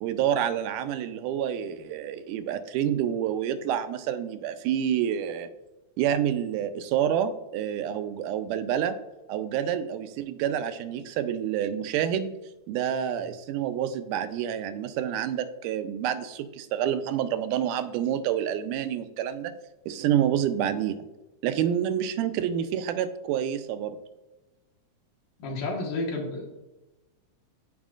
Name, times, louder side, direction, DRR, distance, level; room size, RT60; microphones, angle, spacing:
voice 1, 0.0-5.5 6.0-9.0 9.3-12.3 12.7-19.6 19.9-21.1 21.4-24.0, right 9 dB, 85° right, 10 dB, 2.2 m, -28 dB
voice 2, 25.4-26.5, left 2 dB, 85° left, -1 dB, 3.2 m, -31 dB
14.5 x 5.0 x 2.4 m, 1.0 s
omnidirectional pair, 3.6 m